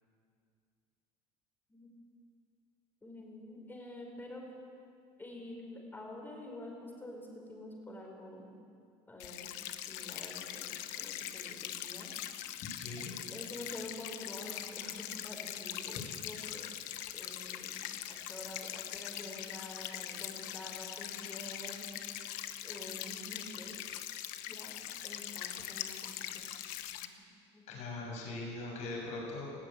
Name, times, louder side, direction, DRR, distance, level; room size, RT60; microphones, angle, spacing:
voice 1, 3.0-4.4 5.2-8.5 9.1-9.5 9.9-12.1 13.3-16.7 17.1-17.8 18.1-21.9 22.6-23.8 24.5-24.8 25.0-26.5 26.9-27.7, left 1 dB, 15° left, 0 dB, 5.1 m, -48 dB
sound 1, 9.2-27.1, left 12 dB, 75° left, 1.1 m, -42 dB
voice 2, 12.7-13.1 27.7-29.5, left 2 dB, 60° left, -1 dB, 6.7 m, -41 dB
19.0 x 15.5 x 8.9 m, 2.4 s
supercardioid pair, 120°, 13 cm